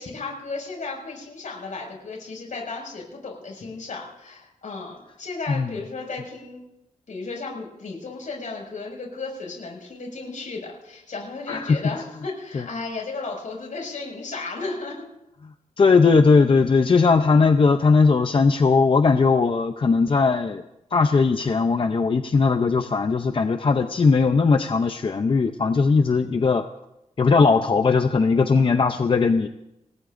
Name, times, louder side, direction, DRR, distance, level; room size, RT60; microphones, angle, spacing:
voice 1, 0.0-6.6 7.1-15.0 29.2-29.3, left 3 dB, 70° left, -1 dB, 6.0 m, -34 dB
voice 2, 11.5-12.0 12.5-12.6 15.8-20.6 20.9-26.6 27.2-29.5, left 4 dB, 40° left, 7 dB, 0.6 m, -19 dB
27.0 x 18.5 x 2.6 m, 0.89 s
wide cardioid pair, 155°, 13 cm